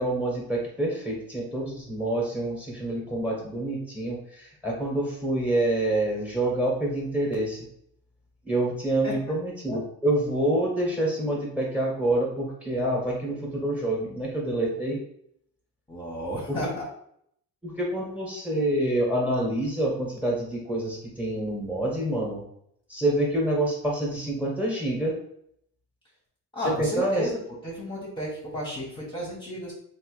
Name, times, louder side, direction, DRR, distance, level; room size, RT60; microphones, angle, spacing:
voice 1, 0.0-7.7 8.4-15.0 16.5-16.7 17.6-22.4 22.9-25.2 26.8-27.3, right 1 dB, 5° right, -2 dB, 1.4 m, -27 dB
voice 2, 15.9-16.9 26.5-29.7, equal, 10° left, -5 dB, 1.2 m, -33 dB
3.2 x 2.8 x 3.2 m, 0.70 s
cardioid pair, 80°, 38 cm